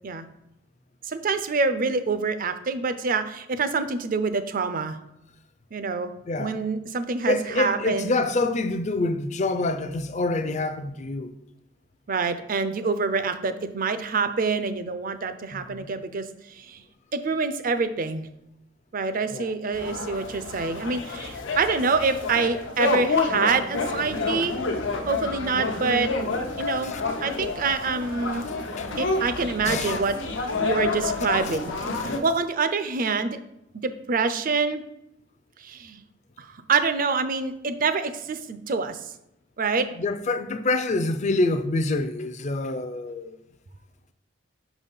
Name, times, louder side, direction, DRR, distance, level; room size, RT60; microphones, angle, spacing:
voice 1, 1.1-5.0 5.7-6.1 6.4-8.2 12.1-16.2 16.5-16.8 17.1-18.3 18.9-24.5 25.1-26.1 26.6-27.0 27.2-28.4 29.0-30.2 30.6-31.7 32.2-33.4 33.8-34.8 35.6-36.0 36.4-39.0 39.6-39.9, right 4 dB, 50° right, 0.5 m, -26 dB
voice 2, 6.3-6.6 7.3-11.3 15.5-15.9 19.3-19.5 26.8-27.0 28.5-28.9 29.6-30.0 40.0-43.4, left 2 dB, 40° left, 0.5 m, -26 dB
sound 1, 19.7-32.2, left 3 dB, 90° left, 0.8 m, -29 dB
5.5 x 4.1 x 5.4 m
head